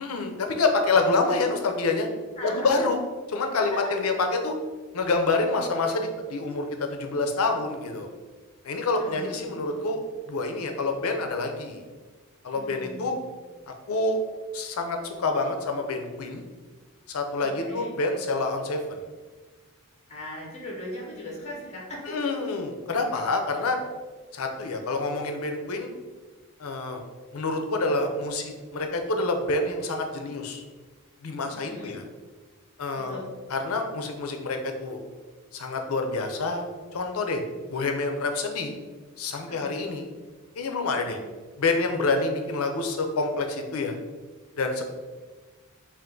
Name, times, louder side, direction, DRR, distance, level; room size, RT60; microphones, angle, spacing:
voice 1, 0.0-2.1 2.4-3.0 3.3-4.5 4.9-8.1 8.6-10.0 10.3-11.8 12.4-13.2 13.9-14.2 14.5-16.4 17.1-19.0 22.0-23.8 24.3-25.9 26.6-27.0 27.3-30.6 31.2-32.0 32.8-33.2 33.5-35.0 35.5-36.7 36.9-37.4 37.7-38.7 39.2-40.0 40.6-41.2 41.6-44.0 44.6-44.9, left 3 dB, 75° left, 5 dB, 0.5 m, -27 dB
voice 2, 2.4-2.8 3.6-3.7 8.9-9.8 12.5-13.3 17.4-18.0 20.1-22.2 31.5-32.0 32.9-33.3 39.4-39.7 41.1-41.2, left 1 dB, 30° left, -3 dB, 0.9 m, -40 dB
3.6 x 2.5 x 3.8 m, 1.3 s
head